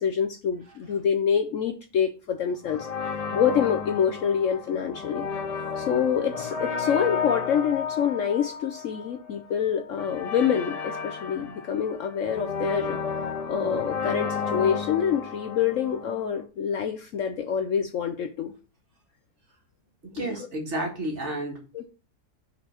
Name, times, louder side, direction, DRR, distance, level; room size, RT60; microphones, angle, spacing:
voice 1, 0.0-2.9 3.3-5.3 5.8-13.0 13.5-18.5 20.2-20.5 21.7-21.8, left 8 dB, 60° left, 6 dB, 0.9 m, -26 dB
sound 1, 2.6-16.4, left 6 dB, 85° left, 0.3 m, -33 dB
voice 2, 20.0-21.6, right 1 dB, 45° right, 0 dB, 2.1 m, -31 dB
5.3 x 4.4 x 5.8 m, 0.34 s
omnidirectional pair, 1.7 m